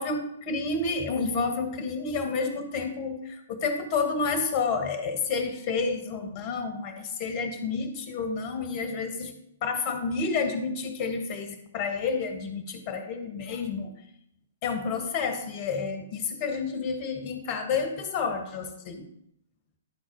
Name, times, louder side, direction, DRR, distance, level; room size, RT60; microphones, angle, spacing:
voice 1, 0.0-9.3 9.6-13.9 14.6-19.1, left 4 dB, 35° left, 6 dB, 1.6 m, -30 dB
11.5 x 4.4 x 4.8 m, 0.75 s
figure-of-eight pair, 115°, 0 cm